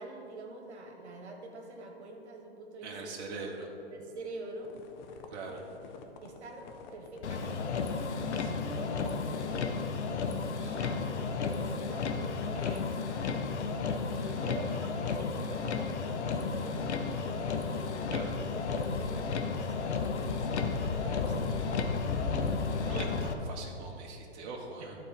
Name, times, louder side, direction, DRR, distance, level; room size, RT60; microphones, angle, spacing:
voice 1, 0.0-2.9 3.9-4.7 5.5-5.6 6.2-12.9 13.2-13.4 14.1-18.3 18.7-22.0 24.8-24.9, right 2 dB, 75° right, 1 dB, 1.4 m, -46 dB
voice 2, 2.8-3.7 5.3-5.6 12.6-12.8 18.1-18.3 22.7-25.0, right 4 dB, 40° right, -1 dB, 1.2 m, -42 dB
sound 1, 4.6-12.1 12.3-13.0 13.3-23.2, left 5 dB, 40° left, 0.8 m, -49 dB
Motor vehicle (road), 7.2-23.3, left 5 dB, 75° left, 0.8 m, -33 dB
11.5 x 4.4 x 5.1 m, 2.8 s
hypercardioid pair, 125°, 34 cm